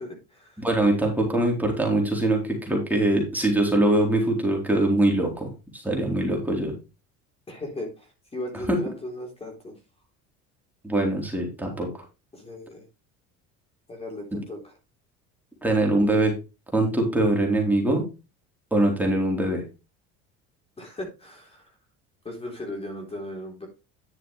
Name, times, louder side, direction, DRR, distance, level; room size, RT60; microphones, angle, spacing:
voice 1, 0.0-0.7 7.5-9.7 12.3-12.9 13.9-14.8 20.8-21.8 22.2-23.7, left 1 dB, 20° left, 2 dB, 4.0 m, -37 dB
voice 2, 0.6-6.7 10.8-11.9 15.6-16.3 16.7-18.0 18.7-19.6, right 1 dB, 5° right, 0 dB, 4.2 m, -23 dB
11.0 x 7.4 x 3.4 m, 0.28 s
supercardioid pair, 110°, 32 cm